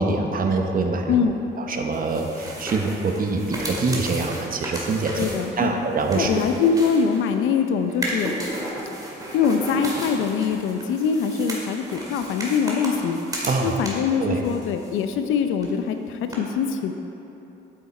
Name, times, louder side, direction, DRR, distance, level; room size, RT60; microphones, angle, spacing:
voice 1, 0.0-1.2 1.6-5.3 5.6-6.4 13.4-13.8 14.2-14.4, right 3 dB, 45° right, 3 dB, 1.0 m, -24 dB
voice 2, 1.1-1.4 5.2-5.8 6.1-8.3 9.3-13.2 13.6-16.9, left 6 dB, 85° left, 7 dB, 0.6 m, -23 dB
sound 1, 1.9-7.4 7.9-14.2 14.4-15.3 15.6-15.7 16.3-16.4, right 1 dB, 20° right, 2.1 m, -34 dB
8.6 x 7.1 x 4.3 m, 3.0 s
cardioid pair, 90°, 20 cm